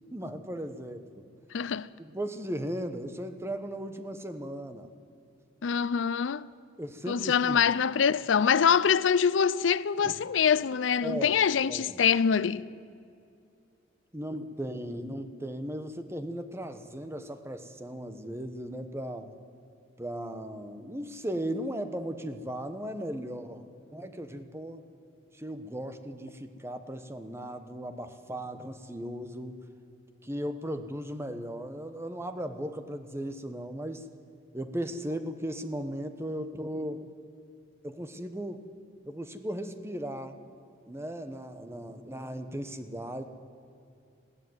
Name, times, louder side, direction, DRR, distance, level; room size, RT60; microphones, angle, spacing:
voice 1, 0.1-1.2 2.0-4.9 6.8-7.6 10.0-10.1 11.0-11.4 11.7-12.0 14.1-19.3 20.0-23.6 23.9-24.8 25.3-29.6 30.2-34.1 34.5-37.1 37.8-38.7 39.0-40.4 40.9-43.3, equal, 15° right, 1.1 m, -37 dB
voice 2, 1.5-1.9 5.6-6.5 7.1-12.6, left 7 dB, 90° left, 0.5 m, -24 dB
20.5 x 15.5 x 9.6 m
head